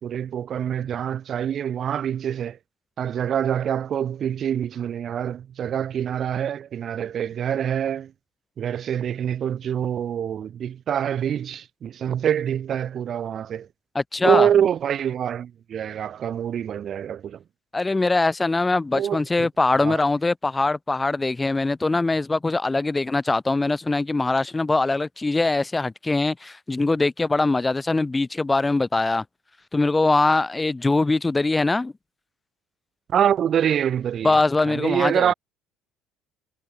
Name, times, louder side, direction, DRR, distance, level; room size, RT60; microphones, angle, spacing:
voice 1, 0.0-2.6 3.0-8.1 8.6-13.7 14.2-17.4 18.9-19.5 19.7-20.0 33.1-34.4 34.7-35.3, right 9 dB, 50° right, 1.4 m, -25 dB
voice 2, 13.9-14.5 17.7-29.2 29.7-31.9 34.2-35.3, left 3 dB, 15° left, 0.9 m, -22 dB
supercardioid pair, 80°, 0 cm